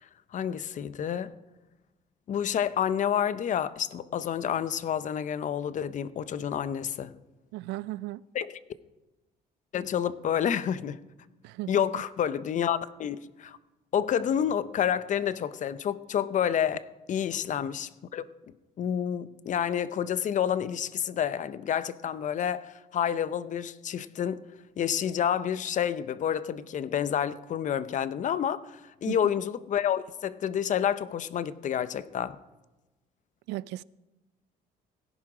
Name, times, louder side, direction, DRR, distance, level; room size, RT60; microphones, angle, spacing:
voice 1, 0.3-1.3 2.3-7.1 8.3-8.5 9.7-11.0 11.7-13.6 13.9-18.2 18.8-24.4 24.8-32.4, left 9 dB, 45° left, 0.7 m, -29 dB
voice 2, 7.5-8.2 11.4-12.0 29.1-29.3 33.5-33.8, right 17 dB, 90° right, 0.4 m, -36 dB
17.0 x 11.0 x 4.9 m
cardioid pair, 110°, 17 cm